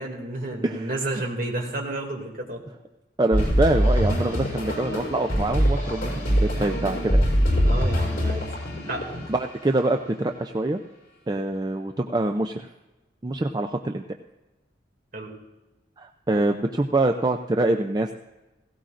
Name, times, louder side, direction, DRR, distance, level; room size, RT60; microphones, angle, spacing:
voice 1, 0.0-2.6 7.5-8.5 8.9-9.1 15.1-15.3, right 2 dB, 50° right, 0 dB, 2.5 m, -31 dB
voice 2, 0.6-1.2 3.2-7.2 9.3-10.8 11.3-12.7 13.2-14.0 16.0-18.1, right 2 dB, 20° right, 5 dB, 0.4 m, -25 dB
sound 1, 3.3-9.4, equal, 50° left, 5.7 m, -23 dB
17.0 x 16.5 x 2.5 m, 1.1 s
head